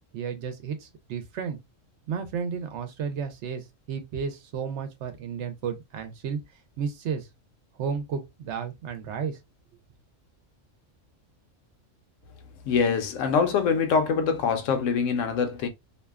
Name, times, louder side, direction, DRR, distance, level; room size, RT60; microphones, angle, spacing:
voice 1, 0.1-1.6 2.1-6.4 6.8-7.3 7.8-9.4, right 6 dB, 70° right, 0.8 m, -32 dB
voice 2, 12.6-15.7, left 6 dB, 75° left, 0.9 m, -24 dB
2.6 x 2.2 x 2.2 m
omnidirectional pair, 1.3 m